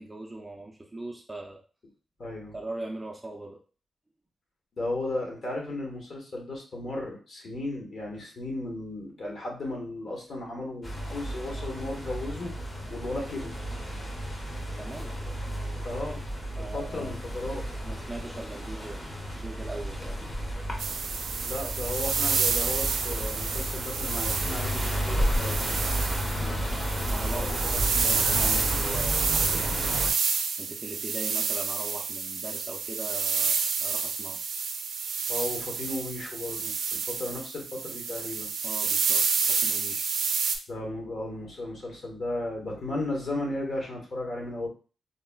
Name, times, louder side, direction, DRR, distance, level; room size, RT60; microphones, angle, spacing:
voice 1, 0.0-1.6 2.5-3.6 14.8-15.2 16.6-17.2 17.8-20.3 26.4-26.7 27.1-30.1 30.6-34.4 38.6-40.1, right 2 dB, 10° right, 0 dB, 0.4 m, -40 dB
voice 2, 2.2-2.5 4.7-12.5 12.9-13.6 15.8-16.3 16.6-17.7 21.4-25.8 27.3-27.7 35.3-38.5 40.7-44.7, left 2 dB, 50° left, 0 dB, 1.0 m, -35 dB
sound 1, 10.8-30.1, equal, 25° left, 0.7 m, -32 dB
sound 2, 20.8-40.6, right 5 dB, 85° right, 0.4 m, -29 dB
3.8 x 2.1 x 2.2 m, 0.37 s
wide cardioid pair, 125°, 0 cm